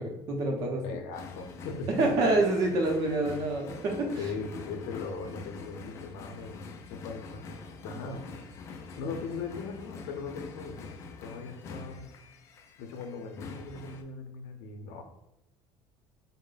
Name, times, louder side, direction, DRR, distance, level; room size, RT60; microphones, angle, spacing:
voice 1, 0.0-0.8 2.0-4.1, right 2 dB, 40° right, 2 dB, 0.7 m, -27 dB
voice 2, 0.8-2.3 4.2-7.6 7.8-8.3 9.0-10.8 11.2-12.1 12.8-15.0, left 4 dB, 80° left, 5 dB, 0.6 m, -39 dB
sound 1, 1.1-14.0, left 4 dB, 30° left, 0.3 m, -45 dB
4.1 x 2.1 x 3.8 m, 0.90 s
cardioid pair, 180°, 9 cm